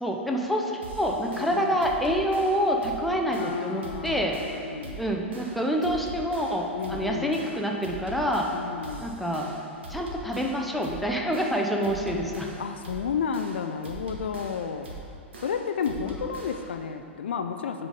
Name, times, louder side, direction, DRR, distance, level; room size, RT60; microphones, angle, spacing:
voice 1, 0.0-4.4 5.0-8.5 9.0-9.6 9.9-12.5, equal, ahead, 0 dB, 0.6 m, -27 dB
sound 1, 0.8-16.8, right 2 dB, 65° right, 1.1 m, -42 dB
voice 2, 1.3-1.8 3.3-5.0 6.7-7.4 8.5-9.1 12.6-14.9 15.4-17.9, left 6 dB, 60° left, 7 dB, 0.3 m, -32 dB
8.0 x 5.1 x 3.7 m, 2.5 s
figure-of-eight pair, 100°, 7 cm